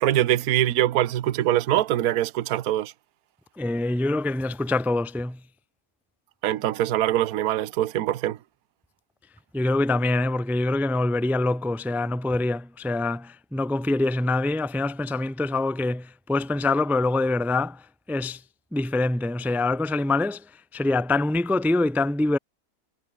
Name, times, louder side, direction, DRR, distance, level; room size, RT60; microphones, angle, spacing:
voice 1, 0.0-2.9 6.4-8.4, right 13 dB, 70° right, 1.3 m, -23 dB
voice 2, 3.6-5.4 9.5-17.8 18.1-18.4 18.7-20.4 20.7-22.4, left 2 dB, ahead, 0.4 m, -25 dB
omnidirectional pair, 1.7 m